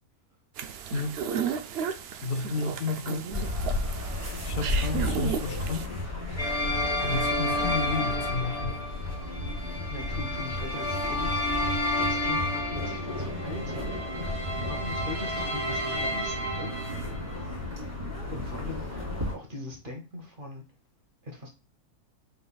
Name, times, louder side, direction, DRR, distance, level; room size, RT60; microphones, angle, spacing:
sound 1, 0.6-5.9, right 7 dB, 75° right, 0.5 m, -34 dB
voice 1, 0.9-1.2 2.2-3.3 4.4-6.1 7.0-8.9, left 4 dB, 65° left, 0.5 m, -32 dB
sound 2, 3.3-19.3, left 1 dB, 20° right, 1.8 m, -34 dB
sound 3, 6.4-17.3, left 1 dB, 45° left, 1.7 m, -31 dB
voice 2, 9.6-11.6 11.9-14.2 14.6-17.5 18.3-20.6 21.2-21.5, left 2 dB, 35° right, 1.2 m, -41 dB
5.3 x 4.0 x 2.3 m
omnidirectional pair, 1.6 m